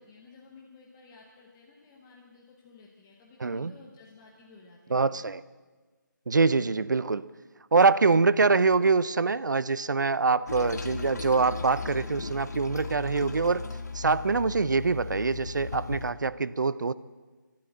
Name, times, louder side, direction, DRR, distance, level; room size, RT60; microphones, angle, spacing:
voice 1, 0.0-5.3, left 4 dB, 10° left, -2 dB, 0.9 m, -54 dB
voice 2, 3.4-3.7 4.9-5.4 6.3-7.3 7.7-13.7 13.9-16.9, right 4 dB, 65° right, 17 dB, 0.6 m, -24 dB
Toilet flush, 10.5-16.1, left 4 dB, 55° left, 1.4 m, -37 dB
12.0 x 11.5 x 8.9 m, 1.4 s
figure-of-eight pair, 170°, 11 cm